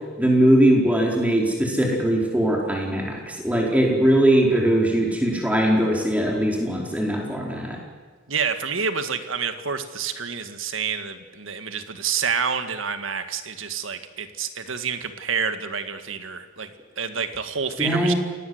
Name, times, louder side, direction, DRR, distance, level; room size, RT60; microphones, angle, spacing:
voice 1, 0.2-7.8 17.8-18.1, right 1 dB, 5° right, -1 dB, 4.7 m, -20 dB
voice 2, 8.3-16.7 17.0-18.1, right 6 dB, 85° right, 9 dB, 1.9 m, -28 dB
28.5 x 18.0 x 8.1 m, 1.4 s
head